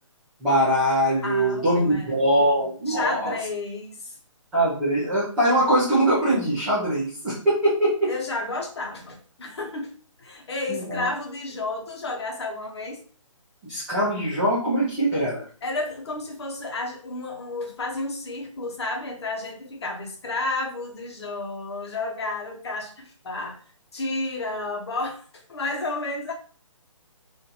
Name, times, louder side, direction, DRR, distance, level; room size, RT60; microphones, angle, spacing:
voice 1, 0.4-3.3 4.5-8.1 10.7-11.1 13.6-15.4, right 1 dB, 5° right, -13 dB, 0.4 m, -22 dB
voice 2, 1.2-2.4 2.9-4.1 8.1-13.0 15.6-23.6 23.9-26.3, left 2 dB, 50° left, 2 dB, 1.0 m, -31 dB
4.0 x 2.6 x 2.8 m, 0.41 s
hypercardioid pair, 170°, 17 cm